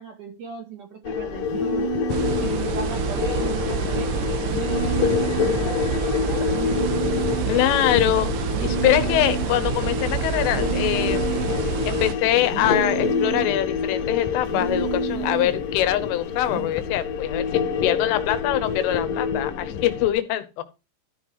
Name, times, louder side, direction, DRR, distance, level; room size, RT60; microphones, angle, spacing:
voice 1, 0.0-1.9 2.4-6.7 19.6-19.7, right 5 dB, 50° right, 3.3 m, -37 dB
sound 1, 1.1-20.1, left 6 dB, 75° left, 2.1 m, -27 dB
sound 2, 1.5-2.6 4.5-5.6 6.5-7.6 8.5-9.6 10.4-11.6 12.5-13.6 14.4-15.6 16.4-16.8, right 8 dB, 65° right, 3.6 m, -31 dB
sound 3, 2.1-12.1, right 8 dB, 90° right, 3.6 m, -28 dB
voice 2, 7.5-11.4 11.9-17.5 17.8-20.6, left 13 dB, 90° left, 3.6 m, -23 dB
13.5 x 5.7 x 4.8 m
omnidirectional pair, 5.5 m